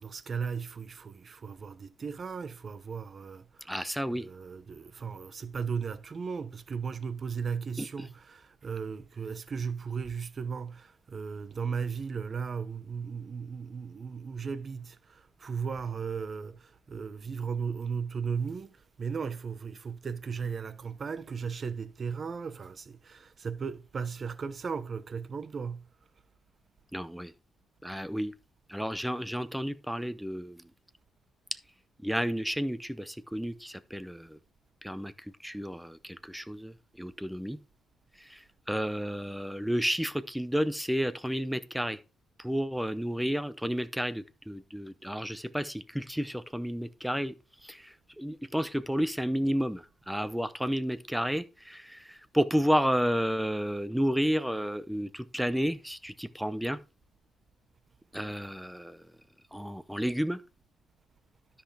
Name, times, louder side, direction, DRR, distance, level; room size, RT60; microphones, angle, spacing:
voice 1, 0.0-25.9, right 6 dB, 40° right, 0.9 m, -36 dB
voice 2, 3.7-4.3 7.8-7.9 26.9-27.3 27.8-28.3 28.7-30.6 32.0-34.4 34.8-35.1 35.4-37.6 38.2-38.4 38.7-42.0 42.4-47.3 47.6-56.8 58.1-59.0 59.5-60.4, equal, ahead, 0.7 m, -31 dB
12.5 x 5.7 x 3.4 m
cardioid pair, 90°, 0 cm